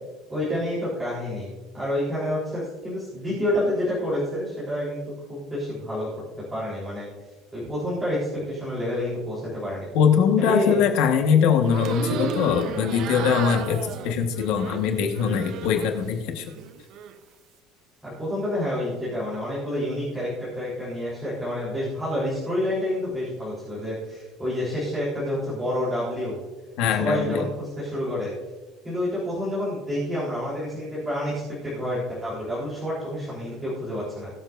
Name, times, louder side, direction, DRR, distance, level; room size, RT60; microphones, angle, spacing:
voice 1, 0.3-5.0 5.3-6.1 6.5-7.1 7.5-9.9 10.4-10.8 18.0-26.4 26.9-28.3 28.8-34.3, left 1 dB, 10° right, -9 dB, 3.8 m, -28 dB
voice 2, 9.9-16.4 26.8-27.5, left 7 dB, 60° left, 4 dB, 1.4 m, -22 dB
sound 1, 11.6-16.1 16.4-17.1, right 7 dB, 45° right, 0.8 m, -34 dB
21.5 x 7.4 x 2.6 m, 1.2 s
cardioid pair, 170°, 0 cm